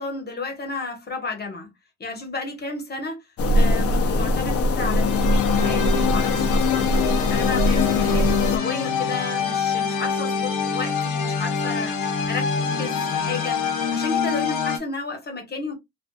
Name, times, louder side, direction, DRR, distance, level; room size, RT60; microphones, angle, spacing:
voice 1, 0.0-1.7 2.0-3.2 3.5-15.7, left 3 dB, 35° left, 1.1 m, -32 dB
sound 1, 3.4-8.6, left 2 dB, 50° left, 0.6 m, -21 dB
sound 2, 4.9-14.8, left 6 dB, 85° left, 0.8 m, -25 dB
2.5 x 2.5 x 2.2 m
cardioid pair, 90°, 30 cm